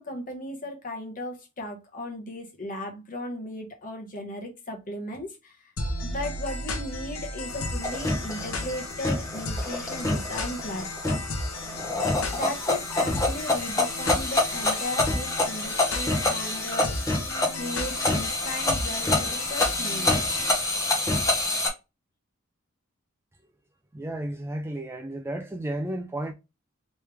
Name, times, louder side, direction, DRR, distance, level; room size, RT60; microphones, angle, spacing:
voice 1, 0.0-5.7 6.0-11.2 11.7-11.8 12.3-17.0 17.5-20.2, left 1 dB, 40° left, 1.0 m, -36 dB
sound 1, 5.8-20.5, left 2 dB, 75° left, 0.8 m, -35 dB
sound 2, 7.5-21.7, left 2 dB, 15° left, 0.9 m, -27 dB
voice 2, 23.9-26.3, right 1 dB, 10° right, 0.3 m, -32 dB
3.2 x 3.2 x 3.3 m
head